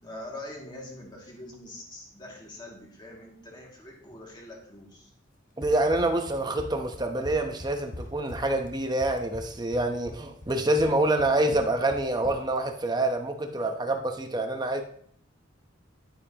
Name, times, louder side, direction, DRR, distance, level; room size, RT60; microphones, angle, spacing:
voice 1, 0.0-5.1, left 1 dB, 20° left, -2 dB, 2.3 m, -44 dB
Run, 5.6-12.6, left 1 dB, 40° left, 1.2 m, -42 dB
voice 2, 5.6-14.8, right 2 dB, 20° right, 5 dB, 0.9 m, -26 dB
11.0 x 9.0 x 2.9 m, 0.63 s
head